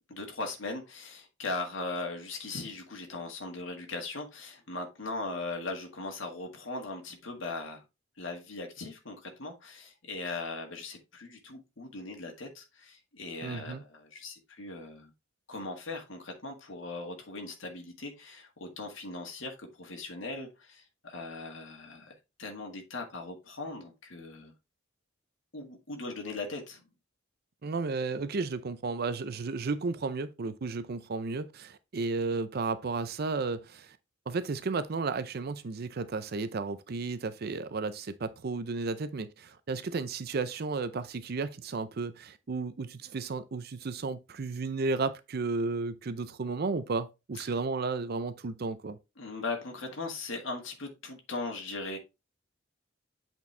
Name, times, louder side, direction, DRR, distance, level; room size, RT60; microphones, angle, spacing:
voice 1, 0.1-7.8 8.2-15.1 15.5-24.5 25.5-26.8 49.2-52.0, left 3 dB, 75° left, 1.8 m, -39 dB
voice 2, 13.4-13.8 27.6-34.0 34.3-49.0, right 4 dB, 55° right, 0.5 m, -33 dB
8.3 x 4.4 x 3.3 m
head